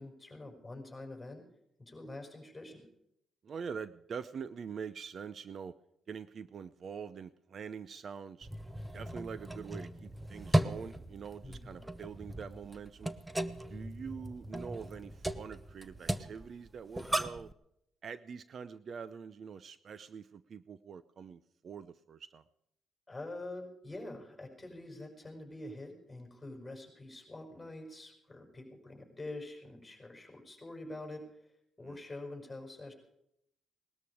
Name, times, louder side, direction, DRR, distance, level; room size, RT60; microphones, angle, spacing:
voice 1, 0.0-1.4 1.8-2.9 11.4-11.8 23.1-31.2 31.8-32.9, left 2 dB, 15° left, 2 dB, 5.9 m, -46 dB
voice 2, 3.4-5.8 6.1-8.5 8.9-13.1 13.7-17.5 18.0-22.4 31.8-32.0, right 6 dB, 50° right, 15 dB, 0.7 m, -44 dB
sound 1, 8.4-17.5, right 1 dB, 10° right, 0.9 m, -37 dB
19.0 x 13.0 x 4.9 m, 0.76 s
cardioid pair, 90°, 0 cm